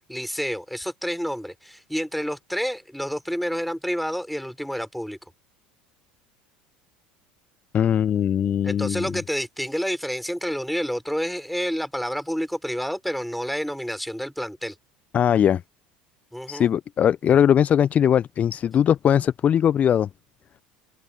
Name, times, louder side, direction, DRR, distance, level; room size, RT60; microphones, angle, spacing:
voice 1, 0.1-5.2 8.6-14.7 16.3-16.7, equal, ahead, 4.7 m, -29 dB
voice 2, 7.7-9.1 15.1-15.6 16.5-20.1, left 9 dB, 35° left, 0.8 m, -20 dB
open air
figure-of-eight pair, 70°, 4 cm